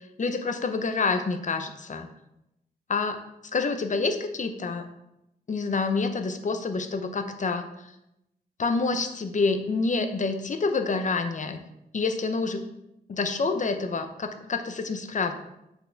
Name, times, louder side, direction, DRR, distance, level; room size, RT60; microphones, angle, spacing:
voice 1, 0.2-2.1 2.9-3.2 3.5-4.8 5.5-7.7 8.6-11.6 11.9-12.6 13.1-15.3, left 4 dB, 50° left, 7 dB, 0.7 m, -27 dB
7.9 x 4.4 x 3.4 m, 0.86 s
wide cardioid pair, 110°, 16 cm